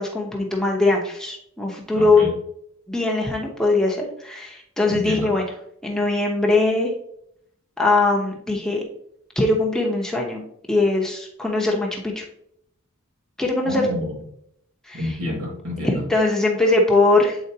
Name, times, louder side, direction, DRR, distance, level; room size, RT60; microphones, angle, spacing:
voice 1, 0.0-2.3 2.9-5.5 5.8-6.9 7.8-8.8 9.4-10.4 10.7-12.2 13.4-13.8 14.9-15.0 15.8-17.4, left 2 dB, 5° left, -2 dB, 0.9 m, -21 dB
voice 2, 1.9-2.3 4.9-5.3 13.6-14.1 14.9-16.0, left 1 dB, 90° right, -2 dB, 2.3 m, -29 dB
7.9 x 4.3 x 2.8 m, 0.72 s
head